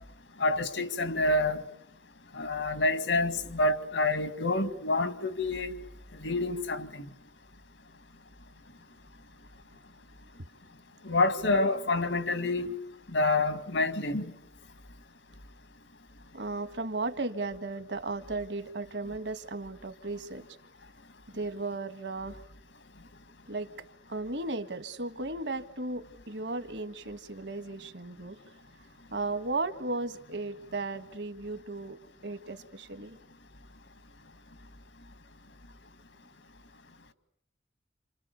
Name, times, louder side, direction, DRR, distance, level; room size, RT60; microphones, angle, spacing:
voice 1, 0.4-1.6 2.3-5.8 6.2-7.1 11.0-12.7 13.1-14.3, left 2 dB, 85° left, 2.1 m, -28 dB
voice 2, 16.3-20.4 21.3-22.5 23.5-23.7 24.1-28.6 29.1-33.2, right 3 dB, 70° right, 1.6 m, -35 dB
29.0 x 28.0 x 6.9 m
head